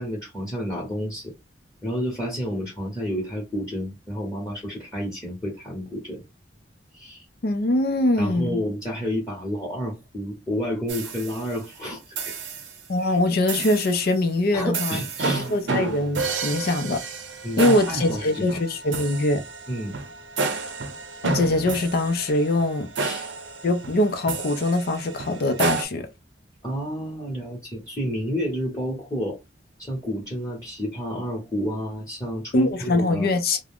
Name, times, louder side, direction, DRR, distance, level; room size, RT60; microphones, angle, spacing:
voice 1, 0.0-1.3 1.8-6.2 6.9-7.2 8.2-12.3 13.0-13.2 14.5-15.5 17.4-18.6 19.7-19.9 23.0-23.3 26.6-29.4 29.8-33.3, equal, 20° left, 0.9 m, -30 dB
voice 2, 7.4-8.6 12.9-17.0 17.6-19.4 21.2-22.9 23.6-26.1 32.5-33.6, left 2 dB, 55° left, 0.5 m, -23 dB
sound 1, 10.9-11.7 12.2-12.8 13.5-14.1 14.7-25.8, right 4 dB, 80° right, 0.7 m, -31 dB
2.4 x 2.2 x 3.4 m
head